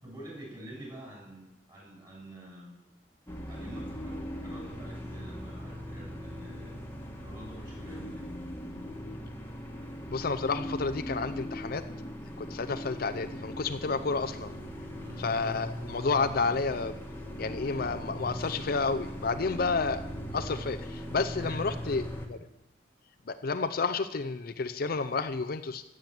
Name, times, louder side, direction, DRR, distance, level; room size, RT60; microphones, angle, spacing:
voice 1, 0.0-2.8 3.5-6.8 7.2-8.3 15.0-15.3 21.4-22.0, right 1 dB, 25° right, -2 dB, 6.3 m, -47 dB
sound 1, 3.3-22.3, equal, 10° left, 1.5 m, -39 dB
voice 2, 10.1-11.8 12.4-14.6 15.2-17.0 17.4-20.0 20.3-22.4 23.3-25.8, left 4 dB, 55° left, 10 dB, 0.5 m, -30 dB
14.0 x 7.6 x 7.6 m, 0.91 s
head